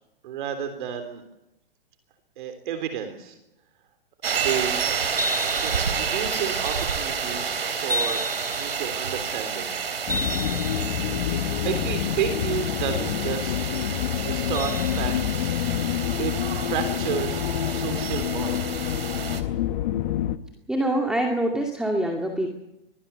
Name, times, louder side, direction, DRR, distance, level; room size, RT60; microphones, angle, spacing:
voice 1, 0.2-1.2 2.4-3.4 4.3-4.8 5.5-8.2 8.6-9.7 11.6-15.5 16.2-17.4 17.7-18.9, right 8 dB, 55° right, 8 dB, 3.6 m, -31 dB
sound 1, 4.2-19.4, right 5 dB, 85° right, 3.4 m, -29 dB
sound 2, 10.1-20.4, left 11 dB, 50° left, 1.3 m, -27 dB
voice 2, 20.7-22.5, right 1 dB, ahead, 2 dB, 2.3 m, -25 dB
23.5 x 18.5 x 7.1 m, 0.89 s
hypercardioid pair, 130°, 29 cm